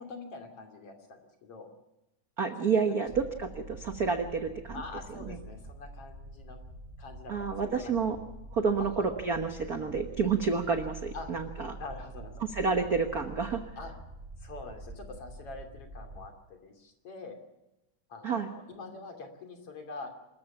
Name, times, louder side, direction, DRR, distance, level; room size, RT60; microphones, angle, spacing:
voice 1, 0.0-1.7 2.6-2.9 4.7-6.6 7.0-7.9 8.8-9.2 11.1-11.3 11.8-12.3 13.8-14.0 14.4-17.4 18.1-20.1, left 3 dB, 50° left, 4 dB, 3.6 m, -45 dB
voice 2, 2.4-4.8 5.3-5.4 7.3-8.2 8.5-11.8 12.5-13.6 18.2-18.5, right 5 dB, 60° right, 6 dB, 0.9 m, -29 dB
sound 1, 3.0-16.3, right 1 dB, 15° right, 3.2 m, -46 dB
26.5 x 14.5 x 7.1 m, 0.97 s
omnidirectional pair, 3.6 m